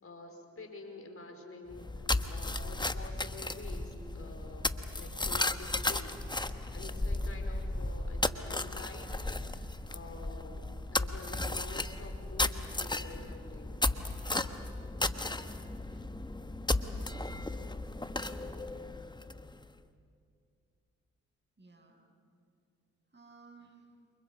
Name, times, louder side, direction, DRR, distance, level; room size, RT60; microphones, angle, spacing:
voice 1, 0.0-6.2 6.7-13.8, left 2 dB, 40° left, 4 dB, 4.9 m, -48 dB
sound 1, 1.7-19.6, left 2 dB, 15° left, 1.2 m, -35 dB
voice 2, 14.9-15.4 15.9-16.1 17.4-17.6 21.6-22.0 23.1-23.9, right 4 dB, 30° right, 2 dB, 7.5 m, -60 dB
29.0 x 28.0 x 5.4 m, 2.3 s
hypercardioid pair, 45°, 34 cm